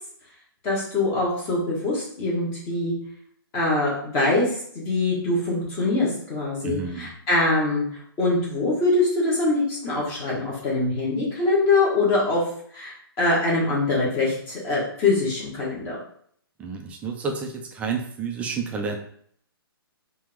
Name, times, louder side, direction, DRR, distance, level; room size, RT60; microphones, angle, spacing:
voice 1, 0.6-2.9 3.5-4.5 4.7-7.8 8.2-12.4 12.7-16.0, left 2 dB, 20° left, -5 dB, 1.7 m, -23 dB
voice 2, 6.6-7.1 16.6-19.0, right 5 dB, 10° right, 1 dB, 0.5 m, -30 dB
4.7 x 2.9 x 3.6 m, 0.62 s
hypercardioid pair, 155°, 13 cm